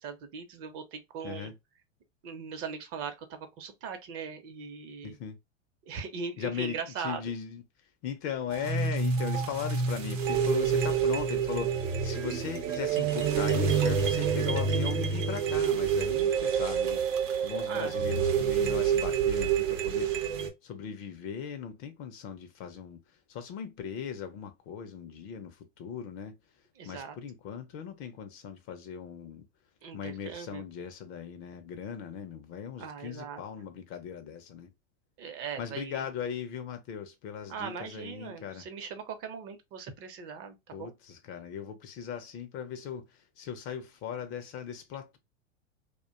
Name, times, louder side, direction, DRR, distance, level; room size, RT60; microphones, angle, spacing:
voice 1, 0.0-1.5 2.2-5.2 5.9-7.2 17.7-18.2 26.8-27.2 29.8-30.6 32.8-33.4 35.2-36.0 37.5-40.9, right 6 dB, 35° right, 0.7 m, -40 dB
voice 2, 5.0-5.4 6.4-7.6 8.0-20.1 20.6-23.0 23.3-26.3 26.8-29.5 29.9-34.7 35.6-38.6 40.7-45.2, left 7 dB, 35° left, 0.5 m, -38 dB
sound 1, 8.5-20.5, right 7 dB, 80° right, 0.7 m, -28 dB
2.4 x 2.2 x 2.4 m
hypercardioid pair, 100°, 37 cm